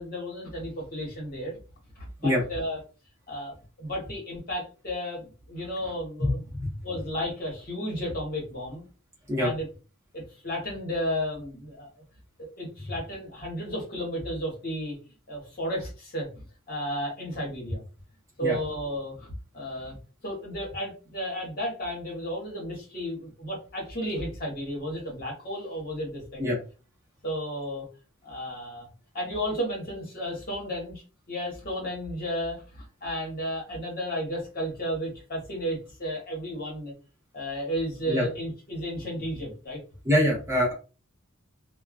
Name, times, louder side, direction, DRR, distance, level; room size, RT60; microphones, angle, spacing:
voice 1, 0.0-1.6 1.9-2.8 3.3-3.5 3.8-6.4 6.8-8.8 9.4-9.7 10.1-11.9 12.4-15.0 15.3-17.8 18.4-20.0 20.2-26.5 27.2-27.9 28.2-28.9 29.1-36.9 37.3-39.8, equal, 45° left, -2 dB, 1.1 m, -33 dB
voice 2, 6.2-6.7 9.3-9.5 18.4-18.6 26.4-26.6 38.1-38.3 40.0-40.7, left 1 dB, 15° right, -5 dB, 0.9 m, -24 dB
2.3 x 2.3 x 2.3 m, 0.34 s
head